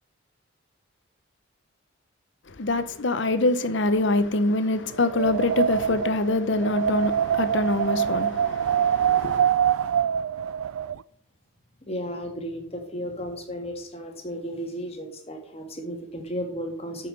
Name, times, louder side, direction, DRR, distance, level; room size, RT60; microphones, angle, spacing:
voice 1, 2.5-9.5, left 2 dB, 60° left, 0.8 m, -25 dB
Wind, 5.0-11.0, right 8 dB, 90° right, 0.3 m, -24 dB
voice 2, 11.9-17.1, equal, 30° left, 1.9 m, -34 dB
8.8 x 5.8 x 6.8 m
head